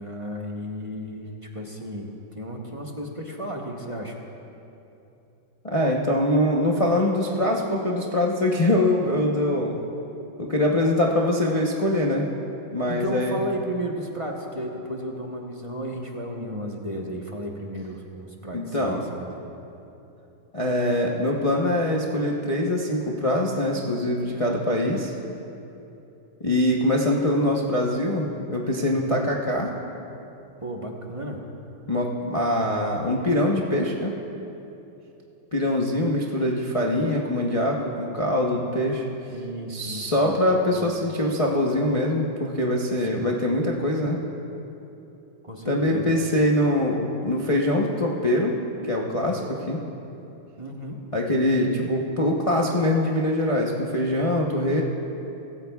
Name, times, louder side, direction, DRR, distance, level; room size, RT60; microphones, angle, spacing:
voice 1, 0.0-4.2 12.8-19.6 28.9-29.2 30.6-31.4 39.3-40.9 43.0-43.3 45.4-46.1 50.6-51.0, equal, 25° right, -1 dB, 0.7 m, -34 dB
voice 2, 5.6-9.8 10.4-12.3 12.7-13.4 18.5-19.1 20.5-25.2 26.4-29.7 31.9-34.1 35.5-39.0 39.7-44.2 45.6-48.6 48.9-49.8 51.1-54.8, left 1 dB, 60° left, -2 dB, 0.3 m, -23 dB
24.5 x 14.5 x 2.3 m, 2.9 s
omnidirectional pair, 2.2 m